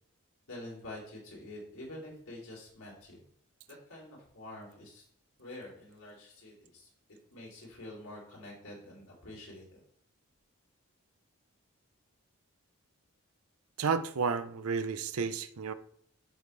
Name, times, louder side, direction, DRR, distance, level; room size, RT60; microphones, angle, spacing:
voice 1, 0.5-3.2 3.9-5.0 5.4-6.9 7.3-9.8, left 1 dB, 80° left, 3.0 m, -47 dB
voice 2, 13.8-15.7, right 5 dB, 80° right, 0.6 m, -31 dB
12.5 x 5.2 x 3.2 m
head